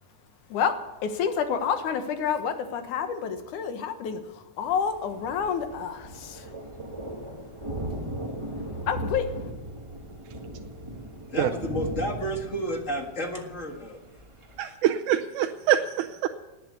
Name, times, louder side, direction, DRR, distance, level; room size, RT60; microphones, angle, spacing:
voice 1, 1.0-6.5 7.7-8.0 8.8-9.3, left 7 dB, 85° left, 8 dB, 2.8 m, -29 dB
Thunder, 4.6-14.6, right 1 dB, 20° right, 0.7 m, -38 dB
voice 2, 11.3-14.0, equal, 30° left, 3 dB, 1.6 m, -31 dB
voice 3, 14.6-16.3, right 11 dB, 85° right, 5 dB, 2.2 m, -25 dB
18.5 x 9.3 x 8.2 m, 1.1 s
omnidirectional pair, 3.4 m